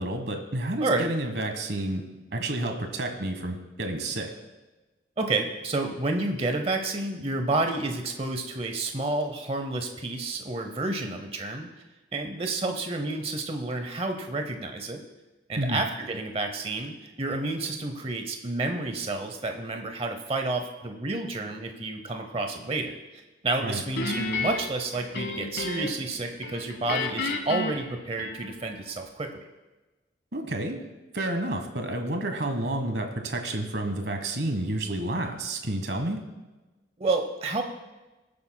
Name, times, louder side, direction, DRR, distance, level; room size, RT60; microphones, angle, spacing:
voice 1, 0.0-2.0 2.3-4.3 15.6-15.8 23.6-23.8 30.3-30.8 31.1-36.2, right 1 dB, 60° right, 5 dB, 1.3 m, -30 dB
voice 2, 5.2-11.7 12.1-15.0 15.5-23.0 23.4-29.4 37.0-37.6, right 2 dB, 30° right, 5 dB, 0.8 m, -30 dB
Guitar, 24.0-26.1 26.4-28.7, left 3 dB, 65° left, 1.2 m, -32 dB
21.5 x 8.6 x 2.2 m, 1.1 s
head